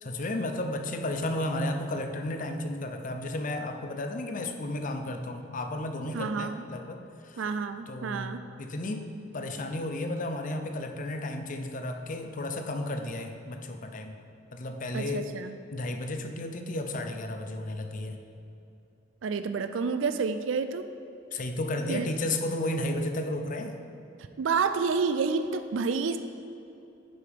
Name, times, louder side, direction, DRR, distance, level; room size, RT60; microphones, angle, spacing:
voice 1, 0.0-7.4 7.9-8.3 8.6-14.2 14.5-15.3 15.7-18.2 21.3-23.8, left 1 dB, 45° left, 6 dB, 0.6 m, -33 dB
voice 2, 6.1-6.7 7.4-8.4 14.9-15.5 19.2-20.9 21.9-22.1 24.4-26.2, right 5 dB, 80° right, 10 dB, 0.4 m, -29 dB
10.5 x 8.1 x 3.6 m, 2.7 s
head